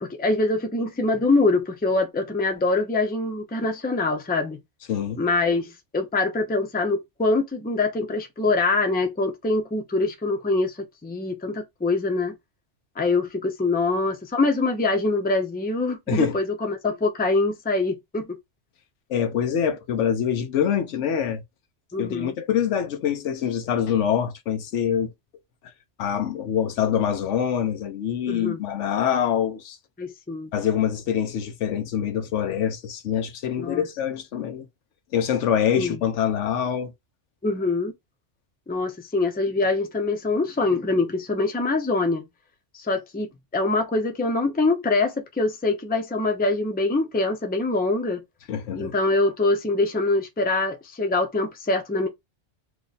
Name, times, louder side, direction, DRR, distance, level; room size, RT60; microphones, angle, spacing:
voice 1, 0.0-4.6 5.2-12.3 13.0-18.4 21.9-22.3 28.3-28.6 30.0-30.5 33.6-33.9 35.8-36.0 37.4-37.9 38.7-42.2 42.7-48.2 48.7-52.1, left 3 dB, 10° left, 0.4 m, -24 dB
voice 2, 4.9-5.2 16.1-16.3 19.1-21.4 22.0-25.1 26.0-29.8 30.5-34.7 35.1-36.9 48.5-49.0, left 8 dB, 85° left, 1.0 m, -25 dB
3.0 x 2.1 x 3.9 m
omnidirectional pair, 1.2 m